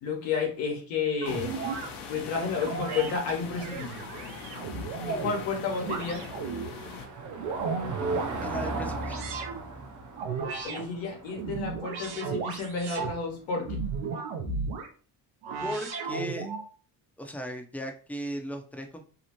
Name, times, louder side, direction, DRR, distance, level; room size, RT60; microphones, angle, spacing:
voice 1, 0.0-1.5 2.1-4.0 5.1-6.2 10.6-13.8, left 5 dB, 85° left, 1 dB, 1.0 m, -31 dB
sound 1, 1.2-7.1, left 5 dB, 60° left, 0.7 m, -42 dB
sound 2, 1.2-1.9 2.6-3.1 3.6-5.4 5.8-6.7 7.2-8.3 9.0-9.6 10.2-10.8 11.3-13.1 13.6-14.9 15.4-16.7, right 4 dB, 80° right, 0.7 m, -34 dB
Car passing by / Engine, 3.4-14.0, right 2 dB, 40° right, 0.6 m, -39 dB
voice 2, 8.4-9.2 15.6-16.5 17.2-19.0, equal, 5° left, 4 dB, 0.5 m, -37 dB
2.8 x 2.0 x 2.8 m, 0.40 s
supercardioid pair, 60°, 47 cm